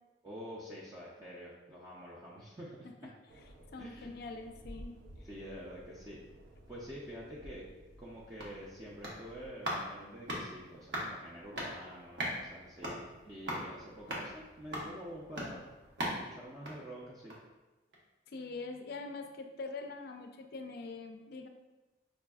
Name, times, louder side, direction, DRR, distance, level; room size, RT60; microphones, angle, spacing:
voice 1, 0.2-3.1 3.8-4.1 5.2-6.2 6.7-7.7 8.0-15.6 16.0-17.4, equal, 20° right, -6 dB, 0.4 m, -47 dB
sound 1, 3.3-9.5, equal, 85° right, 0.5 m, -54 dB
voice 2, 3.7-5.0 18.3-21.5, left 3 dB, 55° left, 5 dB, 0.3 m, -43 dB
sound 2, 8.1-17.6 17.9-18.0, equal, 65° right, 0.9 m, -41 dB
5.1 x 2.5 x 2.3 m, 1.1 s
head